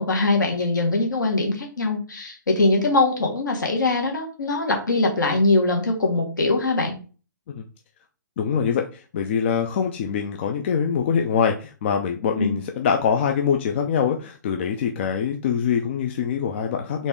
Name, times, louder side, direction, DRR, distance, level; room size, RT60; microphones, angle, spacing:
voice 1, 0.0-6.9 12.4-12.6, left 2 dB, 70° left, 1 dB, 1.5 m, -22 dB
voice 2, 8.4-17.1, left 7 dB, 35° left, 3 dB, 0.5 m, -24 dB
4.0 x 3.0 x 3.6 m, 0.36 s
figure-of-eight pair, 130°, 11 cm